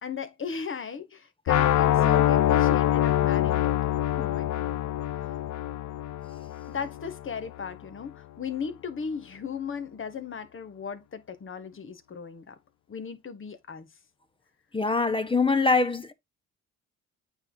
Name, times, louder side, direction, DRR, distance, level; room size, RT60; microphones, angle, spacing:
voice 1, 0.0-3.7 4.1-4.7 6.7-12.5 12.9-13.9, left 6 dB, 40° left, 1.5 m, -37 dB
sound 1, 1.5-7.4, left 12 dB, 70° left, 0.8 m, -24 dB
voice 2, 14.7-16.1, left 3 dB, 15° left, 1.1 m, -23 dB
8.8 x 3.7 x 3.9 m
cardioid pair, 90°, 30 cm